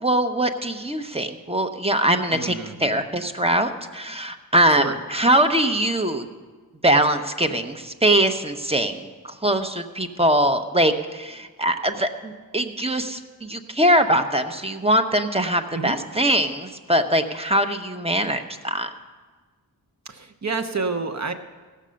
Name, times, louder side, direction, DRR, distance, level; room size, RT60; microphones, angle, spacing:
voice 1, 0.0-2.5 2.8-6.3 6.8-9.1 9.4-18.9, right 1 dB, 15° right, 6 dB, 0.8 m, -22 dB
voice 2, 2.3-3.0 4.7-5.0 15.7-16.0 20.1-21.3, right 4 dB, 50° right, 7 dB, 0.9 m, -29 dB
16.5 x 6.8 x 6.3 m, 1.4 s
wide cardioid pair, 75°, 36 cm